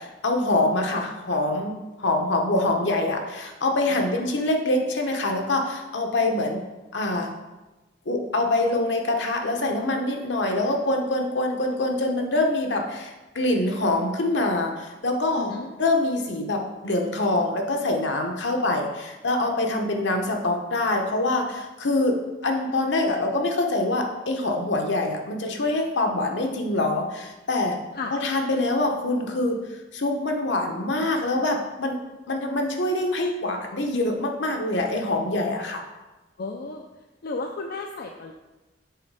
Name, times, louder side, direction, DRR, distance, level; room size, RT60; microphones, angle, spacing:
voice 1, 0.0-6.6 6.9-7.3 8.1-15.5 15.8-27.8 28.1-29.6 29.9-32.0 32.3-35.8, left 2 dB, 75° left, 3 dB, 1.0 m, -25 dB
voice 2, 3.9-4.3 15.4-15.8 27.9-28.1 36.4-36.8 37.2-38.3, left 3 dB, 55° left, 2 dB, 0.5 m, -34 dB
6.9 x 4.2 x 4.8 m, 1.1 s
head